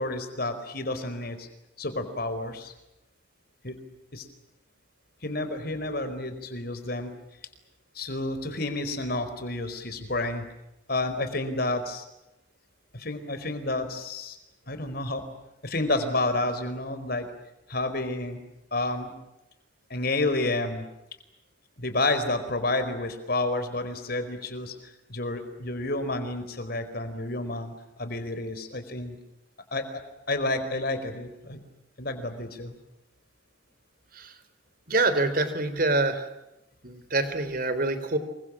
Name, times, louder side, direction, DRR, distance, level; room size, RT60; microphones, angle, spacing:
voice 1, 0.0-1.5 1.8-2.7 3.6-3.8 4.1-4.2 5.2-7.1 7.9-10.4 10.9-12.0 12.9-14.4 14.7-15.2 15.6-17.3 17.7-18.4 18.7-19.1 19.9-20.8 21.8-24.7 25.1-29.2 29.7-29.9 30.3-31.6 32.0-32.8, left 2 dB, 55° left, 9 dB, 4.8 m, -30 dB
voice 2, 34.9-36.3 36.8-38.2, right 2 dB, 50° right, 12 dB, 3.8 m, -25 dB
28.0 x 24.0 x 7.4 m, 0.91 s
head